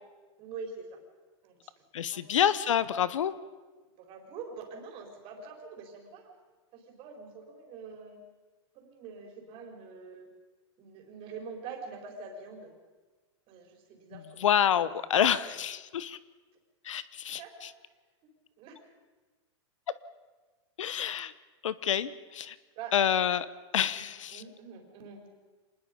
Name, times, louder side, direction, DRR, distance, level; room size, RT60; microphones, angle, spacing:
voice 1, 0.4-0.9 1.4-1.6 2.1-2.2 4.0-6.3 6.7-8.2 8.7-10.3 10.8-12.7 13.5-14.5 15.4-15.5 17.4-17.5 18.6-18.8 22.8-23.0 23.9-24.0 24.3-25.3, right 5 dB, 35° right, 3 dB, 4.6 m, -45 dB
voice 2, 1.9-3.3 14.1-16.2 16.8-17.7 20.8-21.3 21.6-22.6 22.9-23.5 23.7-24.4, left 9 dB, 85° left, 16 dB, 1.0 m, -28 dB
26.0 x 20.0 x 5.4 m, 1.3 s
hypercardioid pair, 145°, 16 cm